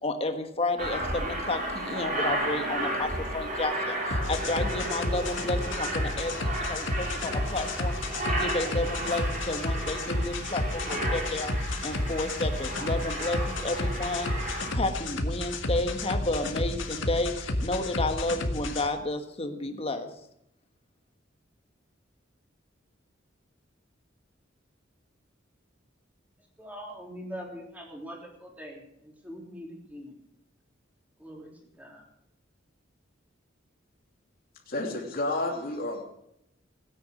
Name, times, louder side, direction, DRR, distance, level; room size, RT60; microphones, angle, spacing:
voice 1, 0.0-20.1, left 2 dB, 30° left, 6 dB, 1.5 m, -31 dB
Aircraft, 0.8-14.7, right 1 dB, 45° right, 4.8 m, -33 dB
sound 1, 4.1-18.9, left 1 dB, 85° left, 1.7 m, -31 dB
voice 2, 26.6-30.2 31.2-31.5 31.8-32.0, equal, 10° right, -1 dB, 3.5 m, -42 dB
voice 3, 34.7-36.0, left 2 dB, 50° left, 0 dB, 3.0 m, -30 dB
17.0 x 9.8 x 6.3 m, 0.78 s
head